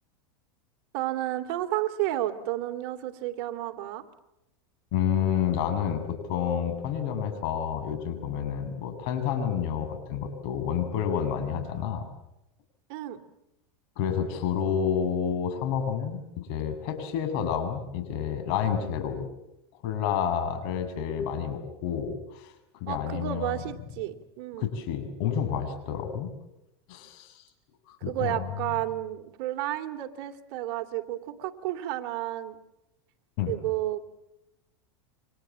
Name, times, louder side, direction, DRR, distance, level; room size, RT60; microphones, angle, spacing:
voice 1, 0.9-4.0 12.9-13.2 22.9-24.7 28.0-32.6 33.5-34.0, right 14 dB, 60° right, 6 dB, 2.8 m, -31 dB
voice 2, 4.9-12.0 14.0-19.3 19.8-23.6 24.6-26.3 26.9-27.4 27.9-28.5 33.4-33.5, left 8 dB, 60° left, 8 dB, 7.3 m, -29 dB
29.5 x 25.0 x 7.6 m, 0.91 s
supercardioid pair, 130°, 14 cm